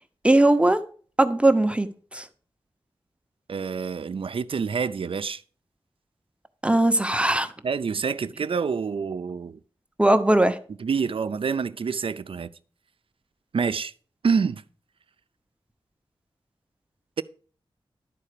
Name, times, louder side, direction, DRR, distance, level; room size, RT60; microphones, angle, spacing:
voice 1, 0.2-0.8 1.2-1.9 2.1-2.3 6.6-7.5 10.0-10.6, right 1 dB, 10° right, 0.8 m, -19 dB
voice 2, 3.5-5.4 7.6-9.6 10.8-12.5 13.5-13.9 14.2-14.6, right 5 dB, 70° right, 0.5 m, -27 dB
11.5 x 4.4 x 6.6 m
wide cardioid pair, 100°, 10 cm